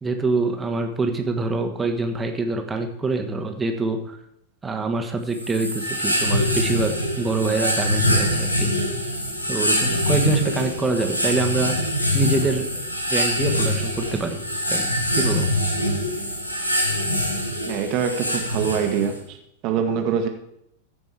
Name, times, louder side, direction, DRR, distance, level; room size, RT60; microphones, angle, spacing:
voice 1, 0.0-4.2 4.6-8.7 9.5-11.7 12.1-12.8 13.1-14.4 14.7-14.9 15.2-15.4, right 3 dB, 15° right, 4 dB, 1.3 m, -25 dB
sound 1, 5.3-19.2, left 1 dB, 85° left, 1.3 m, -24 dB
voice 2, 17.6-19.4 19.6-20.3, right 7 dB, 40° right, 5 dB, 1.4 m, -24 dB
14.5 x 5.3 x 4.8 m, 0.78 s
figure-of-eight pair, 90°, 0 cm